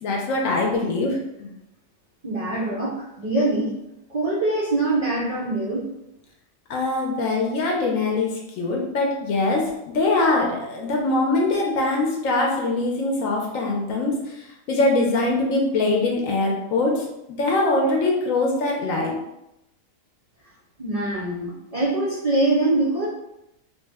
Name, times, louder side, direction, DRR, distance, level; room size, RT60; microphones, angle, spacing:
voice 1, 0.0-1.5 6.7-8.3 8.6-9.6 9.9-14.2 14.7-17.0 17.4-19.1, left 2 dB, 70° left, 0 dB, 0.9 m, -22 dB
voice 2, 2.2-3.7 4.1-5.8 20.8-23.1, right 2 dB, 70° right, -7 dB, 0.3 m, -23 dB
3.1 x 2.1 x 3.4 m, 0.86 s
omnidirectional pair, 1.5 m